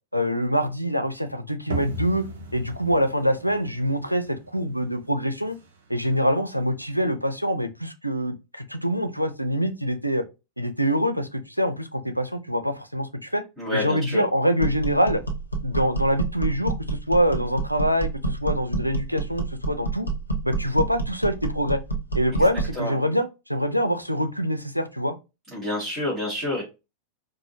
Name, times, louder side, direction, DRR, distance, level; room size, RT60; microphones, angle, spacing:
voice 1, 0.1-2.3 2.5-5.6 5.9-10.2 10.6-13.4 13.7-15.2 15.6-20.1 20.4-21.8 22.1-25.2, equal, 90° right, 0.4 m, -25 dB
sound 1, 1.7-7.2, right 1 dB, 60° right, 0.7 m, -38 dB
voice 2, 13.6-14.2 22.8-23.0 25.5-26.6, left 1 dB, 25° right, 2.1 m, -28 dB
sound 2, 14.6-22.8, right 3 dB, 85° left, 0.7 m, -28 dB
4.8 x 2.1 x 2.7 m
figure-of-eight pair, 90°, 0 cm